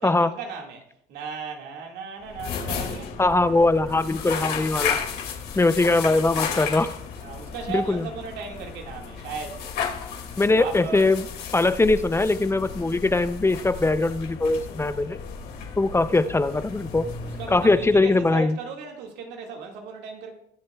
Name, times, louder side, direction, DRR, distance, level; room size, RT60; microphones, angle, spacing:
voice 1, 0.0-3.2 7.2-9.8 10.6-11.1 17.2-20.3, right 5 dB, 90° right, 2.0 m, -36 dB
sound 1, 2.2-18.4, left 6 dB, 75° left, 2.3 m, -34 dB
voice 2, 3.2-5.0 5.6-6.9 7.7-8.0 10.4-11.2 11.5-15.2 15.8-17.1 17.5-18.6, left 2 dB, 15° left, 0.5 m, -21 dB
21.5 x 7.6 x 2.3 m
cardioid pair, 110°, 17 cm